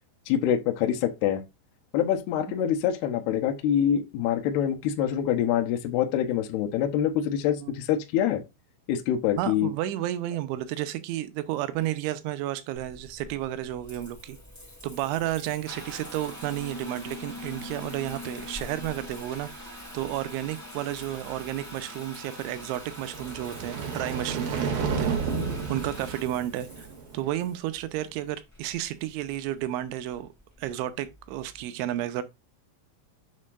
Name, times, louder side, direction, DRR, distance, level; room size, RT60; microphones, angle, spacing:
voice 1, 0.3-1.4 1.9-8.4 8.9-9.7, left 10 dB, 75° left, 2.6 m, -25 dB
voice 2, 9.4-14.4 14.8-19.5 19.9-25.2 25.7-26.9 27.1-30.3 30.6-32.2, right 13 dB, 85° right, 3.0 m, -32 dB
Water tap faucet / Bathtub (filling or washing) / Trickle dribble, 12.7-31.6, left 1 dB, 15° left, 0.5 m, -44 dB
sound 1, 22.9-27.2, right 5 dB, 60° right, 2.7 m, -31 dB
7.3 x 6.5 x 2.5 m
omnidirectional pair, 5.5 m